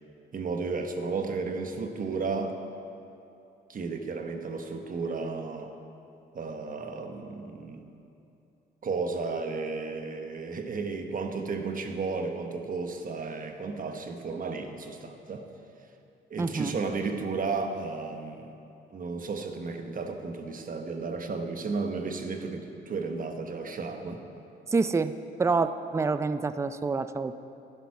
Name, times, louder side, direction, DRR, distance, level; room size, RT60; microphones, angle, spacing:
voice 1, 0.3-2.6 3.7-5.7 6.3-7.8 8.8-15.5 16.3-18.5 18.9-24.2, right 4 dB, 45° right, 5 dB, 1.1 m, -33 dB
voice 2, 16.4-16.8 24.7-27.4, right 4 dB, 15° right, 12 dB, 0.4 m, -27 dB
12.0 x 11.0 x 4.8 m, 2.7 s
cardioid pair, 90°, 20 cm